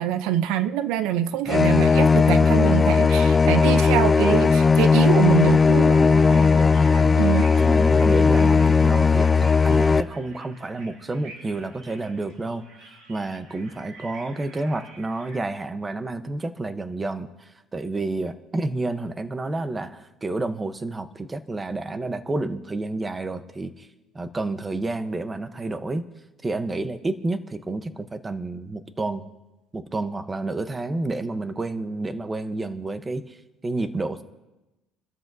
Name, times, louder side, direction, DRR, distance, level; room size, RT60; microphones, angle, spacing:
voice 1, 0.0-6.0 7.2-7.4, right 11 dB, 85° right, 12 dB, 0.6 m, -24 dB
sound 1, 1.5-10.0, left 5 dB, 20° left, 0.4 m, -17 dB
sound 2, 5.9-15.4, right 3 dB, 65° right, 6.7 m, -47 dB
voice 2, 6.0-7.2 7.6-12.7 13.1-23.9 24.1-26.1 26.4-29.2 29.7-33.4 33.6-34.2, right 2 dB, 20° right, 10 dB, 0.9 m, -30 dB
27.0 x 13.0 x 2.7 m, 1.0 s
cardioid pair, 115°, 0 cm